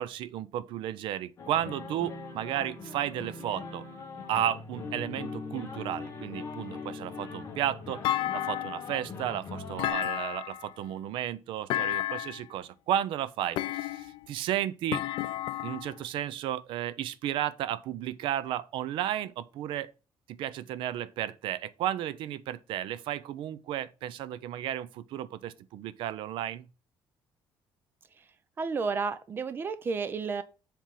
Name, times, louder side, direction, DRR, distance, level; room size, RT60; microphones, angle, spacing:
voice 1, 0.0-3.8 4.3-15.0 15.6-19.9 20.3-26.7, right 11 dB, 65° right, 0.6 m, -33 dB
sound 1, 1.4-9.9, left 4 dB, 30° left, 1.3 m, -41 dB
Thump thud, 8.0-9.0 9.8-10.7 11.7-12.5 13.6-14.3 14.9-15.9, left 13 dB, 65° left, 0.4 m, -31 dB
voice 2, 28.6-30.4, right 4 dB, 25° right, 0.6 m, -31 dB
7.4 x 3.5 x 5.8 m
cardioid pair, 175°, 9 cm